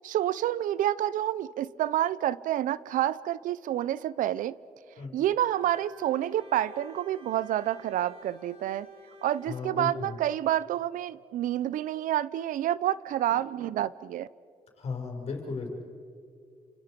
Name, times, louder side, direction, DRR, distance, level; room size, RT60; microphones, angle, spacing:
voice 1, 0.0-4.5 5.1-8.9 9.2-14.3, right 12 dB, 75° right, 19 dB, 0.6 m, -28 dB
Bowed string instrument, 5.3-9.8, left 1 dB, 45° right, 3.4 m, -51 dB
voice 2, 9.5-10.2 14.8-15.7, left 4 dB, 50° left, 1 dB, 6.2 m, -35 dB
30.0 x 27.5 x 5.3 m, 2.3 s
cardioid pair, 120°, 14 cm